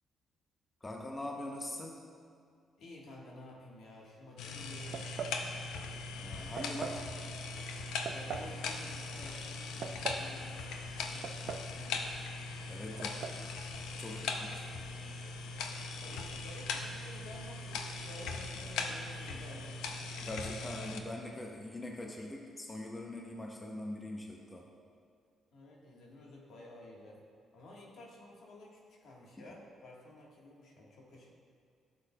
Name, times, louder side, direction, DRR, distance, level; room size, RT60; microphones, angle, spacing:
voice 1, 0.8-2.0 6.2-7.0 12.7-13.1 14.0-14.5 20.2-24.7 29.4-29.5, left 1 dB, 20° left, 0 dB, 0.7 m, -42 dB
voice 2, 2.8-5.4 8.1-12.2 12.9-13.3 14.0-14.7 16.0-19.8 25.5-27.2 27.5-31.3, left 1 dB, 70° left, -2 dB, 1.5 m, -53 dB
sound 1, 4.4-21.0, left 3 dB, 90° left, 0.5 m, -40 dB
sound 2, 4.9-5.4 6.6-7.0 8.1-8.5 9.6-10.3 11.2-11.8 12.0-12.1 13.0-13.4, right 6 dB, 65° right, 0.4 m, -41 dB
12.0 x 6.9 x 2.3 m, 2.3 s
cardioid pair, 90°, 0 cm